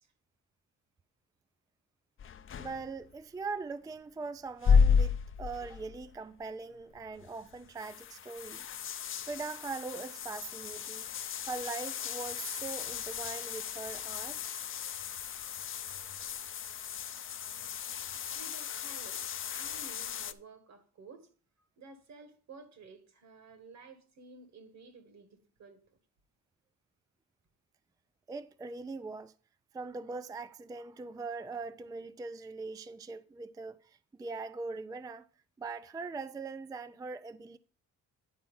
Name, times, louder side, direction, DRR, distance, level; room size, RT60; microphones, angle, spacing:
sound 1, 2.2-3.2 4.5-6.1 6.4-6.5 6.9-20.3, left 6 dB, 45° left, 0.6 m, -33 dB
voice 1, 2.6-8.6 9.2-11.1 11.5-14.4 28.3-29.3 29.7-35.2 35.6-37.6, right 4 dB, 15° right, 0.3 m, -41 dB
voice 2, 18.3-21.3 21.8-25.3 25.6-25.8, right 3 dB, 65° right, 1.8 m, -53 dB
10.5 x 4.2 x 5.5 m
cardioid pair, 90°, 30 cm